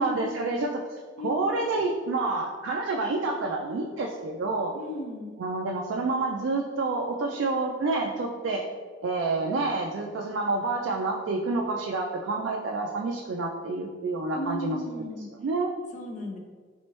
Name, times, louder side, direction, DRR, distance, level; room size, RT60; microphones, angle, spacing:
voice 1, 0.0-4.8 5.4-8.7 9.0-14.8 15.4-15.8, right 3 dB, 70° right, 0 dB, 0.3 m, -28 dB
voice 2, 1.2-1.6 4.7-5.3 14.3-15.3 15.9-16.4, equal, 40° left, 1 dB, 0.5 m, -35 dB
3.4 x 3.1 x 2.9 m, 1.5 s
head